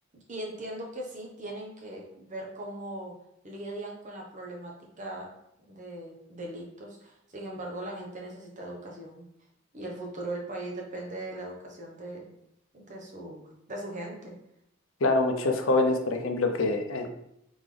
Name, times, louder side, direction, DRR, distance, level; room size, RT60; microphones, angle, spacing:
voice 1, 0.3-3.1 3.4-5.3 5.7-9.3 9.7-12.3 12.7-14.4, right 1 dB, 40° right, -1 dB, 0.9 m, -39 dB
voice 2, 15.0-17.1, left 2 dB, 85° left, 5 dB, 0.6 m, -25 dB
3.8 x 3.5 x 3.3 m, 0.78 s
head